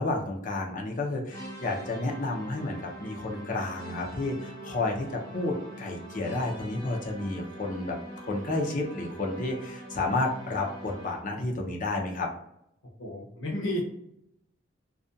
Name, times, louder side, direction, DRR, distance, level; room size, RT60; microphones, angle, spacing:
voice 1, 0.0-8.0 8.2-12.3, left 2 dB, 40° left, 0 dB, 0.5 m, -31 dB
sound 1, 1.3-11.4, right 1 dB, 15° left, 1.0 m, -43 dB
voice 2, 13.0-13.8, left 1 dB, 80° left, -2 dB, 0.7 m, -32 dB
2.4 x 2.2 x 2.6 m, 0.78 s
head